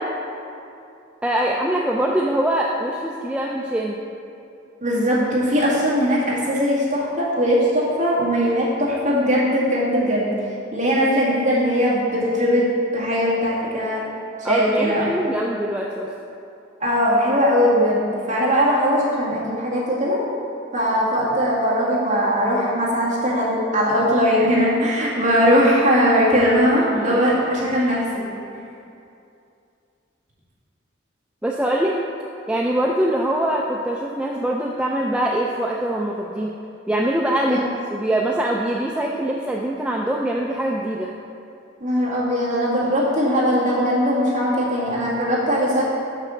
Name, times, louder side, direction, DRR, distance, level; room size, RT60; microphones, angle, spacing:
voice 1, 1.2-4.0 14.4-16.1 26.9-27.2 31.4-32.0 32.5-36.5 36.9-37.6 37.9-41.1, right 1 dB, 5° right, -2 dB, 0.3 m, -23 dB
voice 2, 4.8-10.3 10.7-12.6 12.9-14.1 14.4-15.4 16.8-20.2 20.7-28.0 37.5-37.7 41.8-45.8, equal, 40° right, -7 dB, 2.1 m, -20 dB
6.6 x 5.7 x 6.3 m, 2.6 s
head